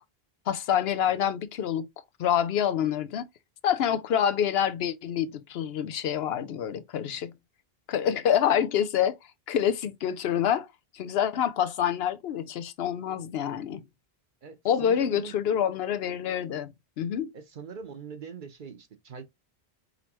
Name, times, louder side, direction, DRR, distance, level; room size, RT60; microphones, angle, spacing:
voice 1, 0.5-1.9 2.2-3.3 3.6-7.3 7.9-9.2 9.5-10.7 10.9-13.8 14.6-17.3, left 9 dB, 75° left, 0.8 m, -27 dB
voice 2, 14.4-15.4 17.3-19.2, right 5 dB, 55° right, 0.9 m, -42 dB
5.2 x 3.1 x 2.9 m
omnidirectional pair, 1.1 m